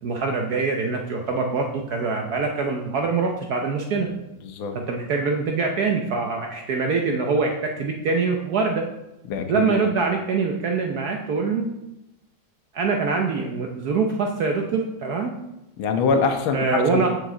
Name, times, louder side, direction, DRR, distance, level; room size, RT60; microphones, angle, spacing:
voice 1, 0.0-4.1 4.7-8.8 9.5-11.7 12.7-15.3 16.5-17.1, right 4 dB, 60° right, 2 dB, 1.1 m, -24 dB
voice 2, 4.4-4.8 9.3-9.7 15.8-17.1, left 5 dB, 90° left, 6 dB, 1.6 m, -24 dB
8.3 x 6.6 x 3.8 m, 0.92 s
omnidirectional pair, 2.1 m